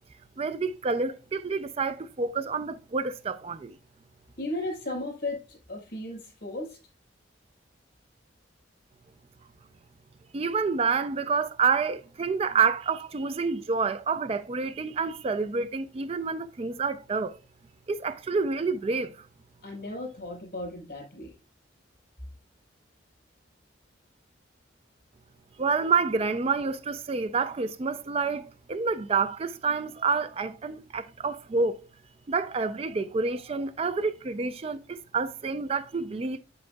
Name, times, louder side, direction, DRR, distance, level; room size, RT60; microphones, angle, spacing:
voice 1, 0.4-3.8 10.3-17.4 17.9-19.3 25.6-31.8 32.3-36.4, right 4 dB, 30° right, 0.3 m, -28 dB
voice 2, 4.4-6.8 19.6-21.3, left 2 dB, 50° left, 4.5 m, -35 dB
8.1 x 7.7 x 2.2 m
head